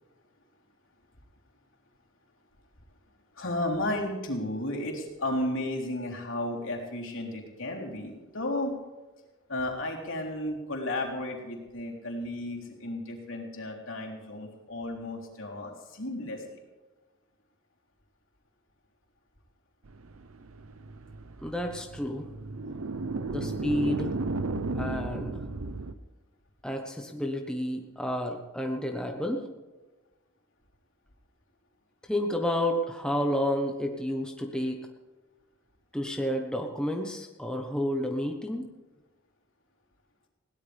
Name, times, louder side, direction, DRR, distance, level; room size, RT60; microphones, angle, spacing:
voice 1, 3.4-8.8 9.5-16.6, left 1 dB, 70° left, -1 dB, 3.5 m, -33 dB
sound 1, 19.9-25.9, right 3 dB, 85° right, 0.8 m, -34 dB
voice 2, 21.4-22.3 23.3-24.1 24.7-25.4 26.6-29.5 32.0-34.8 35.9-38.7, equal, 5° left, 2 dB, 1.0 m, -30 dB
21.0 x 17.0 x 3.5 m, 1.2 s
head